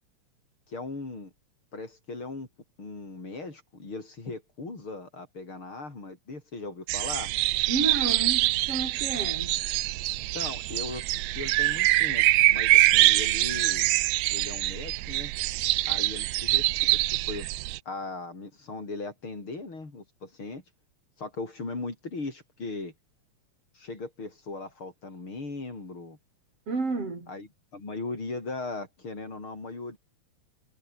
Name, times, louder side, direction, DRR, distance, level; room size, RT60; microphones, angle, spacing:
voice 1, 0.7-1.3 1.7-2.5 2.8-7.3 10.3-13.9 14.3-15.3 15.9-16.6 17.1-17.5 17.9-20.6 21.2-22.9 23.7-26.2 27.3-30.0, left 3 dB, 45° left, 6.2 m, -38 dB
sound 1, 6.9-17.8, right 18 dB, 80° right, 1.9 m, -24 dB
voice 2, 7.7-9.6 26.7-27.3, right 3 dB, 55° right, 6.3 m, -31 dB
omnidirectional pair, 3.3 m